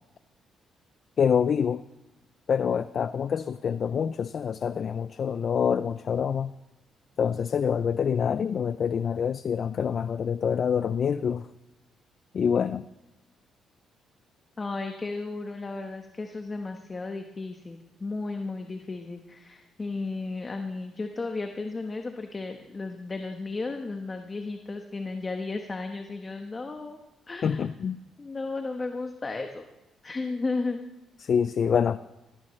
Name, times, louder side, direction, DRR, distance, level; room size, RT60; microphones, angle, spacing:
voice 1, 1.2-1.8 2.5-6.5 7.2-11.5 12.3-12.9 27.4-28.0 31.2-32.0, left 7 dB, 55° left, 14 dB, 0.4 m, -26 dB
voice 2, 14.6-27.0 27.3-27.6 28.2-29.6 30.0-30.8, left 3 dB, 30° left, 5 dB, 1.1 m, -34 dB
18.0 x 16.5 x 3.2 m, 1.0 s
cardioid pair, 90°, 0 cm